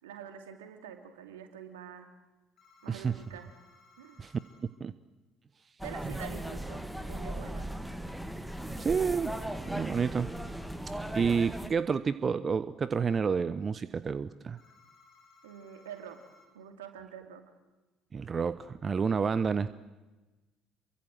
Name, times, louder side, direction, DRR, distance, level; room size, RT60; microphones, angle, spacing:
voice 1, 0.0-2.1 2.8-3.5 4.0-4.2 5.8-7.7 15.4-16.2 16.5-17.4, right 8 dB, 70° right, 6 dB, 2.8 m, -46 dB
sound 1, 2.6-4.6 8.6-10.6 14.6-16.5, left 4 dB, 45° left, 5.7 m, -61 dB
sound 2, 5.8-11.7, right 1 dB, ahead, 2.0 m, -38 dB
voice 2, 8.8-9.3 9.7-10.3 10.9-14.6 18.1-19.8, right 6 dB, 35° right, 16 dB, 0.8 m, -29 dB
28.5 x 23.5 x 7.8 m, 1.2 s
figure-of-eight pair, 55°, 0 cm